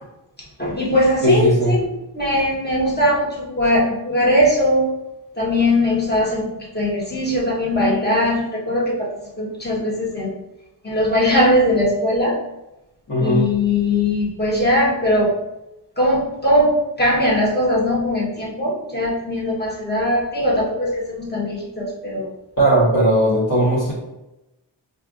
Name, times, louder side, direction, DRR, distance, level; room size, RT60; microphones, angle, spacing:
voice 1, 0.6-4.9 5.4-9.1 9.4-10.3 10.8-12.4 13.2-15.4 16.0-22.3, left 1 dB, 20° left, -5 dB, 1.1 m, -20 dB
voice 2, 1.2-1.8 13.1-13.5 22.6-23.9, right 1 dB, 45° left, -9 dB, 1.3 m, -17 dB
5.4 x 2.6 x 2.4 m, 0.95 s
wide cardioid pair, 75°, 46 cm